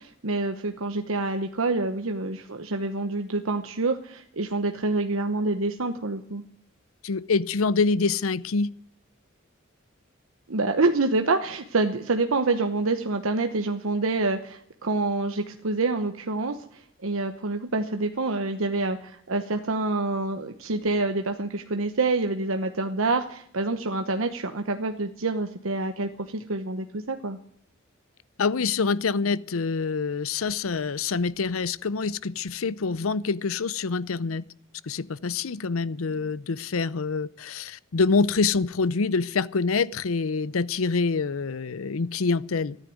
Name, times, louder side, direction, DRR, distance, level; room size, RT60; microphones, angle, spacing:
voice 1, 0.0-6.4 10.5-27.4, right 3 dB, 75° right, 1.0 m, -27 dB
voice 2, 7.0-8.7 28.4-34.4 34.8-42.8, left 4 dB, 85° left, 0.6 m, -26 dB
14.0 x 10.0 x 9.4 m
head